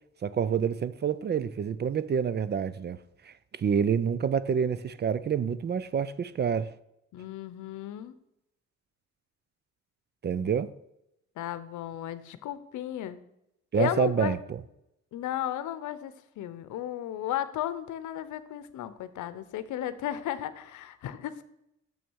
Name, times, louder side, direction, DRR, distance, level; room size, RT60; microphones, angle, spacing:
voice 1, 0.2-3.0 3.3-6.7 10.2-10.7 13.7-14.6, right 7 dB, 35° right, 0.4 m, -28 dB
voice 2, 7.1-8.1 11.4-13.2 13.7-14.4 15.1-21.4, left 12 dB, 75° left, 0.8 m, -34 dB
7.0 x 6.3 x 6.2 m
cardioid pair, 90°, 30 cm